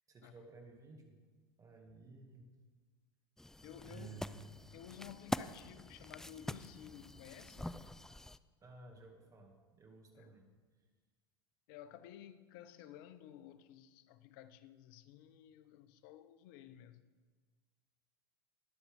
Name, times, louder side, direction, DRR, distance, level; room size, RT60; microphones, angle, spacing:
voice 1, 0.1-1.2 1.6-2.5 3.8-4.5 8.6-10.5, right 3 dB, 30° right, 2.1 m, -54 dB
sound 1, 3.4-8.4, left 1 dB, 5° left, 0.3 m, -45 dB
voice 2, 3.6-4.1 4.7-7.8 10.2-10.3 11.7-17.0, left 11 dB, 65° left, 0.7 m, -54 dB
20.5 x 7.2 x 3.6 m
hypercardioid pair, 90°, 12 cm